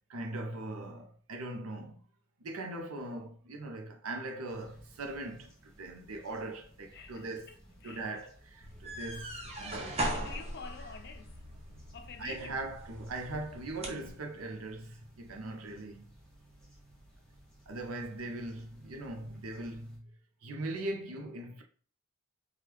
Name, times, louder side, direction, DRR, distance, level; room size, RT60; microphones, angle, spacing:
voice 1, 0.1-2.0 2.4-7.5 7.8-10.0 12.2-16.1 17.7-20.1 20.4-21.6, right 2 dB, 90° right, 0.7 m, -40 dB
sound 1, 4.5-20.0, equal, 5° left, 0.7 m, -59 dB
voice 2, 6.9-8.1 10.1-11.4 11.9-12.7, left 5 dB, 50° left, 0.5 m, -48 dB
sound 2, 8.6-14.1, right 1 dB, 30° right, 0.7 m, -40 dB
2.9 x 2.4 x 3.3 m
head